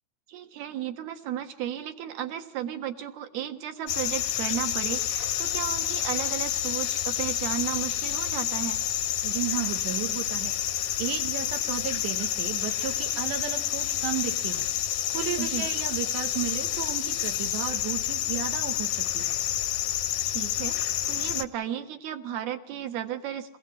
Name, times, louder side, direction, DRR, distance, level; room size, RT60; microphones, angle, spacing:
voice 1, 0.3-8.8 15.4-15.7 20.2-20.8 21.1-23.6, right 11 dB, 65° right, 7 dB, 3.3 m, -34 dB
sound 1, 3.9-21.4, left 11 dB, 70° left, 1.8 m, -29 dB
voice 2, 9.2-19.4, right 11 dB, 85° right, 4 dB, 3.8 m, -34 dB
28.0 x 16.5 x 8.8 m, 0.80 s
omnidirectional pair, 4.9 m